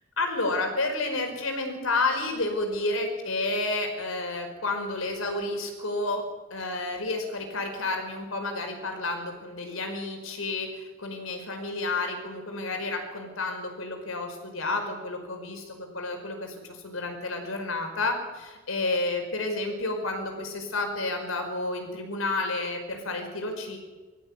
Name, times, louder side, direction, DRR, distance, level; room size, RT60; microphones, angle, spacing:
voice 1, 0.2-6.2 6.5-23.8, left 2 dB, 80° left, 4 dB, 5.2 m, -30 dB
21.5 x 14.5 x 9.8 m, 1.3 s
head